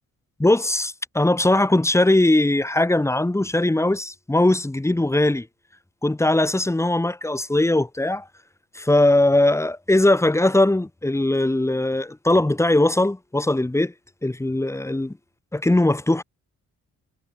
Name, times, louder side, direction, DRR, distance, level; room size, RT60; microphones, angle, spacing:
voice 1, 0.4-5.5 6.0-8.3 8.8-13.9 14.2-15.2 15.5-16.2, left 1 dB, 10° left, 1.7 m, -20 dB
cardioid pair, 125°, 30 cm